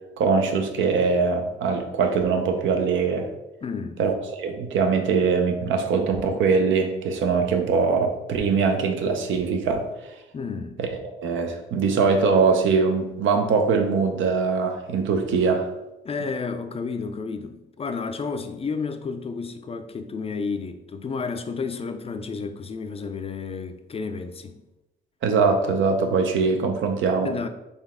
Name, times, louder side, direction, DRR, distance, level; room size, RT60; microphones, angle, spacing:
voice 1, 0.2-3.3 4.0-9.8 10.8-10.9 11.2-15.7 25.2-27.3, right 5 dB, 75° right, 0.7 m, -22 dB
voice 2, 3.6-4.0 10.3-10.8 16.0-24.6 27.2-27.5, left 4 dB, 30° left, 0.4 m, -31 dB
4.0 x 3.2 x 3.6 m
cardioid pair, 90°, 20 cm